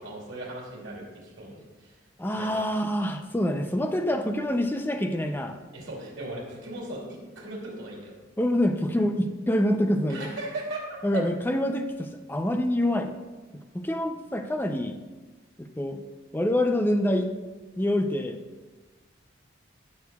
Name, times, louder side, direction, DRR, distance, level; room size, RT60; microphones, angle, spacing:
voice 1, 0.0-1.9 2.3-2.6 5.7-7.0 7.3-8.1 10.1-11.2, right 1 dB, 75° right, -5 dB, 2.9 m, -37 dB
voice 2, 2.2-5.6 8.4-10.3 11.0-13.1 13.7-15.0 15.6-16.0 16.3-17.3 17.8-18.4, left 1 dB, 10° left, 6 dB, 0.5 m, -26 dB
16.5 x 6.5 x 2.3 m, 1.3 s
head